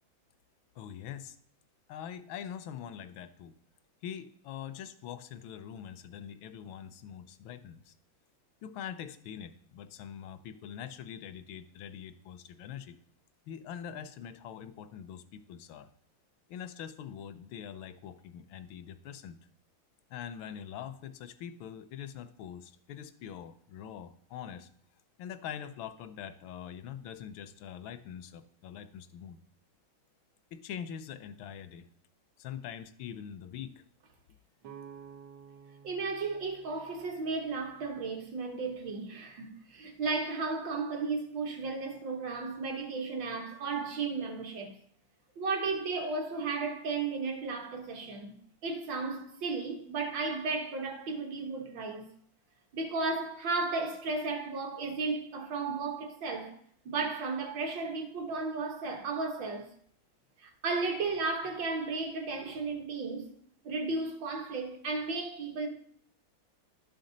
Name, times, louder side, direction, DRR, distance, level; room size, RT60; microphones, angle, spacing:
voice 1, 0.8-1.4 1.9-3.5 4.0-7.9 8.6-12.9 13.5-15.9 16.5-19.4 20.1-24.7 25.2-29.4 30.5-31.9 32.4-33.8, left 9 dB, 80° left, 1.4 m, -43 dB
sound 1, 34.6-38.4, right 7 dB, 85° right, 1.9 m, -52 dB
voice 2, 35.8-44.7 45.4-48.3 48.6-52.1 52.7-56.5 56.9-59.7 60.4-63.3 63.6-65.7, right 3 dB, 65° right, 1.9 m, -34 dB
12.0 x 5.3 x 3.9 m
omnidirectional pair, 2.2 m